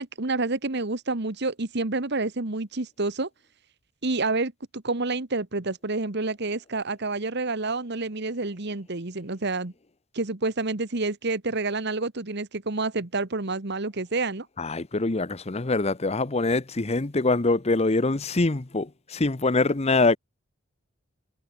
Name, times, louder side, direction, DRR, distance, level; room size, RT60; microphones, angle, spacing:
voice 1, 0.0-3.3 4.0-9.7 10.1-14.5, right 3 dB, 60° right, 1.6 m, -28 dB
voice 2, 14.6-20.2, left 3 dB, 30° left, 0.9 m, -24 dB
head